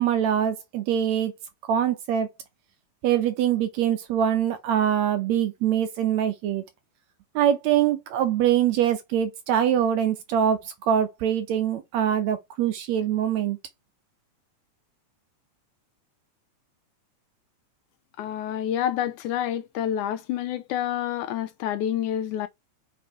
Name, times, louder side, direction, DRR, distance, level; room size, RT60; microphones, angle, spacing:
voice 1, 0.0-1.3 1.7-2.3 3.0-6.6 7.4-10.6 10.9-13.6, right 9 dB, 70° right, 1.8 m, -23 dB
voice 2, 18.2-22.5, left 10 dB, 75° left, 2.0 m, -28 dB
5.5 x 4.6 x 4.6 m
omnidirectional pair, 3.7 m